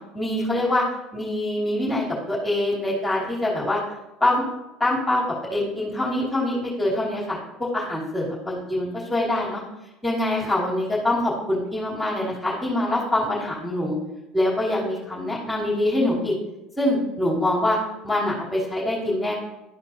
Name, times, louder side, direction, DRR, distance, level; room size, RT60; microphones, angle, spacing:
voice 1, 0.1-0.8 1.1-3.8 4.2-4.4 4.8-5.2 5.5-9.6 10.0-13.9 14.3-16.3 16.8-17.8 18.0-19.3, left 1 dB, 5° left, -7 dB, 2.7 m, -24 dB
12.5 x 4.3 x 2.9 m, 0.97 s
figure-of-eight pair, 65°, 0 cm